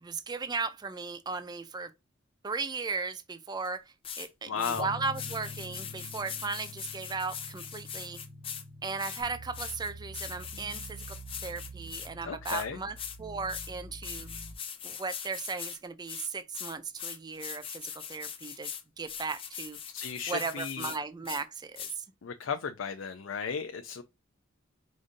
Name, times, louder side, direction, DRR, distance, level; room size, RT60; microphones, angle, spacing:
voice 1, 0.0-1.9 2.4-3.8 4.2-8.2 8.8-11.2 11.4-14.3 14.8-18.7 19.0-19.8 20.3-22.0, right 4 dB, 20° right, 0.4 m, -36 dB
sound 1, 3.6-3.7 4.0-4.3 4.6-4.8 5.1-8.6 9.0-12.1 12.4-12.6 13.0-13.2 13.5-13.7 14.0-15.8 16.1-21.0 21.2-21.4 21.8-21.9, left 8 dB, 25° left, 0.8 m, -41 dB
voice 2, 4.5-4.9 12.2-12.8 19.9-20.9 22.2-24.0, left 6 dB, 65° left, 0.5 m, -35 dB
sound 2, 4.7-12.4, left 1 dB, 40° right, 1.2 m, -48 dB
sound 3, 9.2-14.5, right 2 dB, 70° right, 1.3 m, -46 dB
5.0 x 2.6 x 3.7 m
head